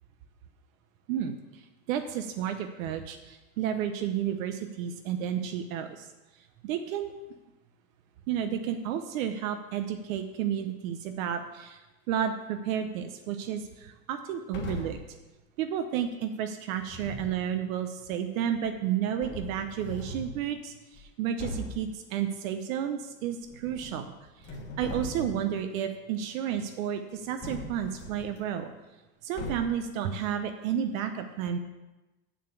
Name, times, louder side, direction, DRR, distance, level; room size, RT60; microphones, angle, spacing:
voice 1, 1.1-6.1 6.6-7.1 8.3-15.0 15.6-24.1 24.4-28.7 29.2-31.6, right 9 dB, 70° right, 7 dB, 0.9 m, -32 dB
sound 1, 14.5-15.1 16.8-17.4 18.6-18.7 19.2-20.4 20.9-21.0 21.4-21.9 23.4-24.1 24.4-25.5 27.4-28.4 29.4-29.9, left 1 dB, 25° left, 1.5 m, -39 dB
7.4 x 6.9 x 7.0 m, 1.1 s
supercardioid pair, 155°, 42 cm